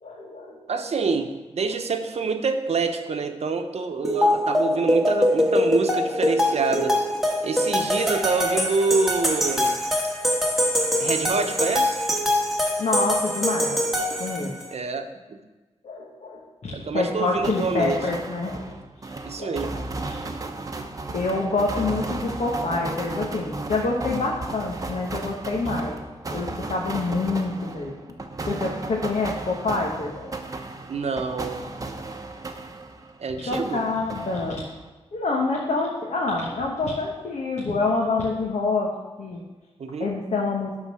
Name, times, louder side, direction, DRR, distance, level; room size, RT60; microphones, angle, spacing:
voice 1, 0.0-0.6 12.8-14.5 15.8-18.7 19.4-19.8 21.1-26.0 26.3-27.9 28.5-30.4 33.4-34.6 35.1-38.9 39.2-39.4 40.0-40.7, left 3 dB, 75° left, -2 dB, 1.2 m, -27 dB
voice 2, 0.7-7.0 7.4-9.8 11.0-12.0 14.7-15.1 16.7-18.0 19.2-19.8 30.9-31.6 33.2-33.8 39.8-40.1, right 4 dB, 70° right, 6 dB, 0.8 m, -26 dB
sound 1, 4.0-14.7, left 1 dB, ahead, 1.4 m, -23 dB
sound 2, 17.4-33.2 33.5-34.9, right 2 dB, 30° right, 0.8 m, -35 dB
11.5 x 4.0 x 6.2 m, 1.2 s
wide cardioid pair, 105°, 11 cm